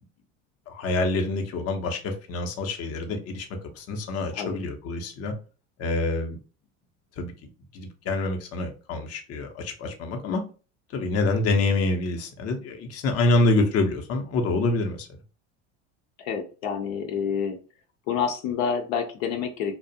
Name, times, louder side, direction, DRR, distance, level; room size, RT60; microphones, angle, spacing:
voice 1, 0.7-3.5 3.8-5.3 5.8-6.4 7.2-7.3 7.7-10.4 10.9-15.1, left 2 dB, 40° left, 5 dB, 0.6 m, -26 dB
voice 2, 16.2-17.6 18.1-19.8, left 7 dB, 80° left, 4 dB, 0.6 m, -28 dB
2.4 x 2.0 x 2.6 m, 0.34 s
supercardioid pair, 90°, 39 cm